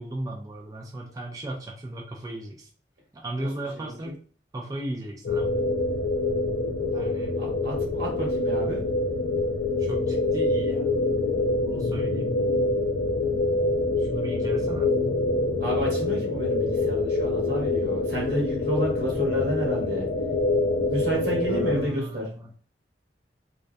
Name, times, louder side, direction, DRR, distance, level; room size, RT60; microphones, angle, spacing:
voice 1, 0.0-2.7 3.1-4.1 4.5-5.6 6.9-7.3 9.8-11.0 11.7-12.3 14.0-14.9 21.5-22.5, right 1 dB, 20° right, -1 dB, 0.3 m, -36 dB
voice 2, 3.7-4.1 7.4-8.8 15.6-20.1 20.9-22.3, equal, 65° right, -3 dB, 1.1 m, -30 dB
sound 1, 5.2-21.9, left 2 dB, 80° left, 0.4 m, -25 dB
2.2 x 2.2 x 2.5 m, 0.41 s
head